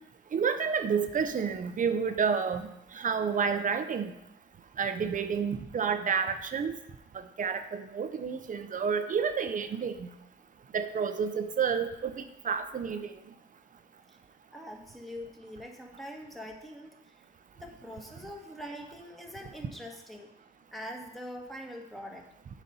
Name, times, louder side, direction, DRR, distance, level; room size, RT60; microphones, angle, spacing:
voice 1, 0.3-2.7 2.9-4.1 4.8-6.7 7.4-10.1 10.7-13.1, right 6 dB, 40° right, 9 dB, 0.6 m, -30 dB
voice 2, 14.5-17.1 17.5-20.3 20.7-22.3, equal, ahead, 0 dB, 1.3 m, -43 dB
7.3 x 4.1 x 5.5 m, 0.82 s
cardioid pair, 90°, 20 cm